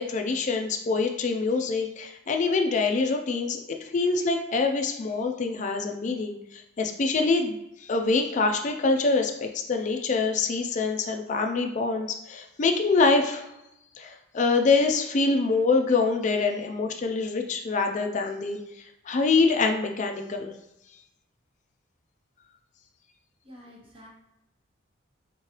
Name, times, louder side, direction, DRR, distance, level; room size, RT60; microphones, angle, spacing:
voice 1, 0.0-3.6 3.9-13.5 14.0-20.5, left 4 dB, 40° left, 4 dB, 0.4 m, -25 dB
voice 2, 23.4-24.1, equal, 25° right, -2 dB, 0.8 m, -48 dB
3.7 x 3.1 x 2.9 m, 0.88 s
head